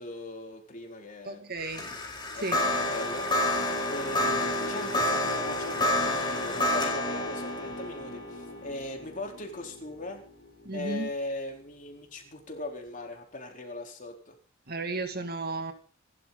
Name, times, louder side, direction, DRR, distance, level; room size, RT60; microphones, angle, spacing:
voice 1, 0.0-1.5 2.3-10.2 10.7-14.4, left 2 dB, 40° left, 4.1 m, -40 dB
voice 2, 1.2-1.9 2.3-2.6 10.6-11.1 14.7-15.7, right 2 dB, 50° right, 2.4 m, -33 dB
sound 1, 1.6-10.9, left 1 dB, 20° left, 5.2 m, -30 dB
27.5 x 12.5 x 4.1 m
head